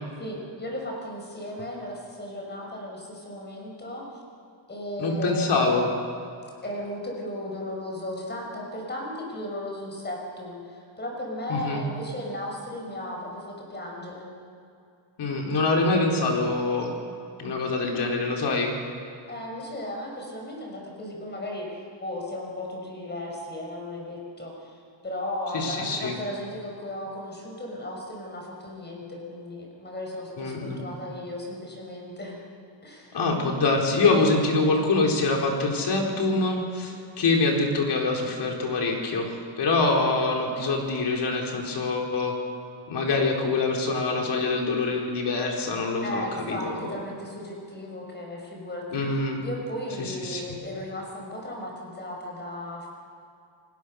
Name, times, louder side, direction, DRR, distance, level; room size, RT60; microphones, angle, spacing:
voice 1, 0.2-4.1 4.7-5.6 6.6-14.3 19.3-24.8 25.0-32.4 32.8-33.2 39.9-40.2 46.0-52.9, left 1 dB, 20° left, 0 dB, 5.8 m, -36 dB
voice 2, 5.0-5.9 11.5-11.8 15.2-16.9 17.4-18.8 25.5-26.1 30.4-30.8 33.1-39.3 39.6-42.4 42.9-47.0 48.9-49.4 50.0-50.4, left 3 dB, 60° left, 0 dB, 4.4 m, -25 dB
29.0 x 20.0 x 6.5 m, 2.5 s
wide cardioid pair, 170°, 47 cm